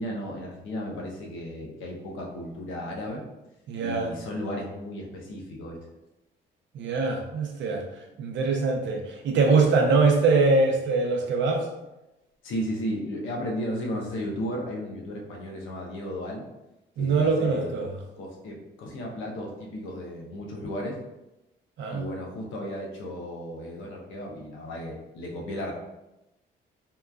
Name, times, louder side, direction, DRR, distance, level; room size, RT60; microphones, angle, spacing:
voice 1, 0.0-3.2 3.8-5.8 12.4-16.4 17.0-17.7 18.2-21.0 21.9-25.7, equal, 80° left, -1 dB, 0.7 m, -34 dB
voice 2, 3.7-4.1 6.7-7.8 8.2-11.7 17.0-17.9 21.8-22.0, right 4 dB, 70° right, 2 dB, 0.6 m, -23 dB
2.9 x 2.3 x 2.3 m, 0.94 s
cardioid pair, 90°, 20 cm